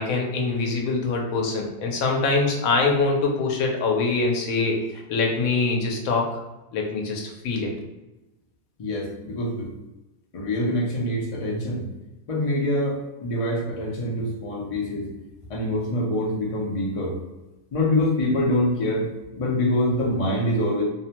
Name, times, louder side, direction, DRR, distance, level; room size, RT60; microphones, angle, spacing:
voice 1, 0.0-4.8 5.1-6.3 6.7-7.7, left 3 dB, 80° left, 0 dB, 1.0 m, -24 dB
voice 2, 8.8-9.7 10.3-11.9 12.3-15.1 15.5-17.2 17.7-19.1 19.3-20.8, left 1 dB, 50° left, -3 dB, 0.4 m, -25 dB
2.7 x 2.1 x 2.8 m, 1.0 s
omnidirectional pair, 1.5 m